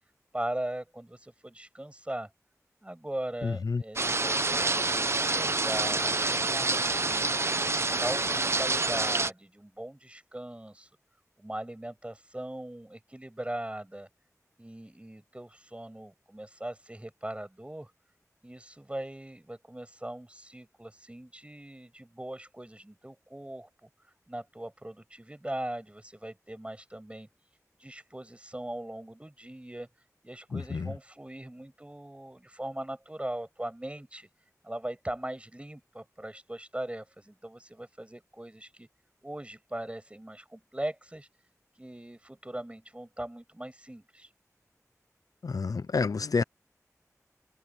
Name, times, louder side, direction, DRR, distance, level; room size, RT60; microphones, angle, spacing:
voice 1, 0.3-2.3 2.8-4.7 5.2-7.3 7.7-10.9 11.4-14.1 14.6-17.9 18.4-23.9 24.3-27.3 27.8-29.9 30.2-34.3 34.6-38.9 39.2-41.3 41.8-44.3, right 1 dB, 20° right, 7.7 m, -39 dB
voice 2, 3.4-3.8 30.5-30.9 45.4-46.4, left 4 dB, 85° left, 0.6 m, -29 dB
sound 1, 4.0-9.3, right 3 dB, 50° right, 0.9 m, -27 dB
wide cardioid pair, 60°, 6 cm